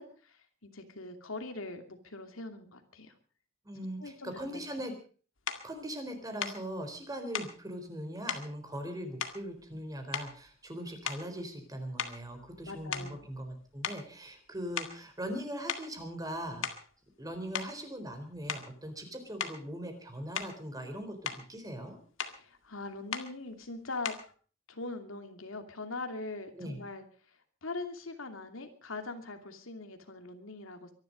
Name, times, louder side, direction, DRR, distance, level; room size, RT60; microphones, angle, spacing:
voice 1, 0.0-3.1 4.0-4.8 12.6-13.3 22.2-24.1 24.7-30.9, left 3 dB, 90° left, 6 dB, 2.7 m, -42 dB
voice 2, 3.6-4.9 5.6-16.7 17.2-22.0 26.5-26.8, equal, 20° right, 6 dB, 3.9 m, -40 dB
sound 1, 5.5-5.7 6.4-6.6 7.3-7.6 8.3-8.5 9.2-9.8 10.1-10.5 11.0-11.4 12.0-13.5 13.8-14.1 14.8-15.0 15.7-15.9 16.4-16.9 17.5-17.8 18.5-18.7 19.4-19.6 20.3-20.6 21.0-21.5 22.2-22.4 23.1-23.3 24.0-24.3, left 7 dB, 75° left, 2.0 m, -37 dB
23.5 x 11.5 x 5.3 m, 0.41 s
head